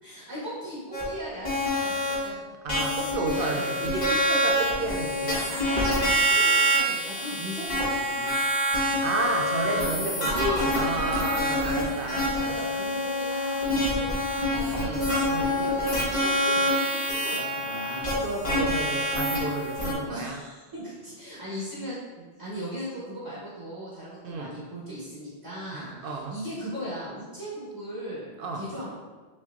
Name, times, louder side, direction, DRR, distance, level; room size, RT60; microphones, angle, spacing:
voice 1, 0.0-2.4 3.3-3.7 5.5-7.6 7.9-8.4 9.7-15.0 15.4-18.0 20.1-28.3 28.5-29.0, equal, 25° right, -9 dB, 1.1 m, -38 dB
sound 1, 0.9-1.0 1.4-2.1 2.7-19.9, equal, 40° left, 1.1 m, -26 dB
voice 2, 2.6-5.5 9.0-12.8 14.7-15.6 18.2-20.4 24.2-24.5 25.7-26.4 28.4-28.7, right 3 dB, 60° right, 1 dB, 0.6 m, -32 dB
6.1 x 2.9 x 2.4 m, 1.3 s
omnidirectional pair, 1.2 m